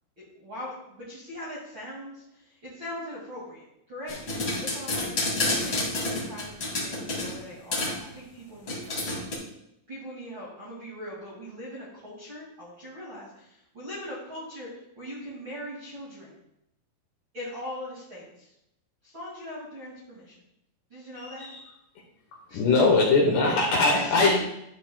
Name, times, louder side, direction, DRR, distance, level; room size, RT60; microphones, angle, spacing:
voice 1, 0.2-4.2 4.6-9.0 9.9-14.7 14.9-16.3 17.3-18.5 19.0-20.4 20.9-21.5 22.5-22.8 23.9-24.4, left 1 dB, 40° right, -8 dB, 1.7 m, -40 dB
sound 1, 4.1-7.4 7.7-8.0 8.7-9.4, left 2 dB, 35° left, 2.0 m, -29 dB
voice 2, 21.2-21.6 22.5-24.4, left 3 dB, 70° left, -1 dB, 2.8 m, -21 dB
14.0 x 6.5 x 2.4 m, 0.81 s
omnidirectional pair, 6.0 m